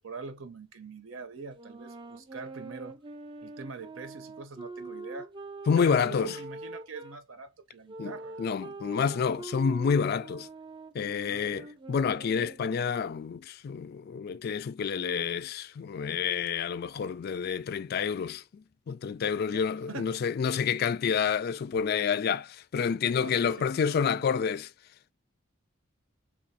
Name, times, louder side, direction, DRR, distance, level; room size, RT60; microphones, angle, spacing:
voice 1, 0.0-3.0 3.4-5.3 5.8-8.4 11.2-11.7 19.5-20.2 23.2-24.3, right 4 dB, 75° right, 0.7 m, -44 dB
sound 1, 1.5-7.2 7.9-13.4, right 3 dB, 25° right, 0.4 m, -44 dB
voice 2, 5.7-6.4 8.0-8.1 8.4-10.5 10.9-24.7, left 6 dB, 50° left, 0.3 m, -29 dB
3.3 x 2.3 x 4.0 m
head